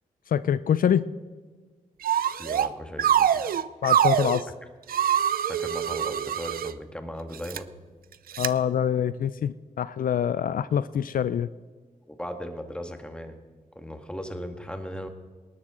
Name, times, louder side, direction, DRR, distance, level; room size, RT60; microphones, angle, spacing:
voice 1, 0.3-1.0 3.8-4.5 8.4-11.5, left 9 dB, 70° left, 15 dB, 0.4 m, -25 dB
sound 1, 2.0-2.7 3.0-4.4 4.9-6.7 7.3-7.6 8.3-8.5, right 9 dB, 75° right, 0.5 m, -24 dB
voice 2, 2.4-3.4 5.4-7.7 12.1-13.4 13.8-15.1, equal, 5° left, 6 dB, 1.8 m, -37 dB
19.0 x 11.5 x 3.8 m, 1.4 s
cardioid pair, 55°, 15 cm